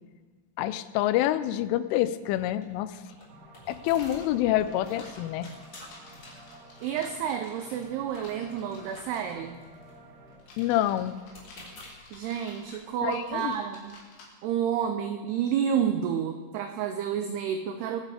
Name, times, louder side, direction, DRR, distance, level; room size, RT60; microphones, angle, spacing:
voice 1, 0.6-3.0 3.7-5.5 10.6-11.2 13.0-13.5, left 13 dB, 90° left, 14 dB, 3.1 m, -27 dB
sound 1, 2.2-13.9, left 2 dB, 35° left, 4.2 m, -52 dB
sound 2, 3.3-10.4, right 2 dB, 65° right, 3.7 m, -51 dB
sound 3, 4.0-4.2 4.7-7.2 8.1-9.0 9.5-9.8 10.4-12.8 13.1-14.3, left 3 dB, 70° left, 4.7 m, -52 dB
voice 2, 6.8-9.6 12.1-14.0 14.4-18.0, right 8 dB, 90° right, 7 dB, 2.3 m, -30 dB
22.5 x 7.6 x 4.9 m, 1.5 s
omnidirectional pair, 5.5 m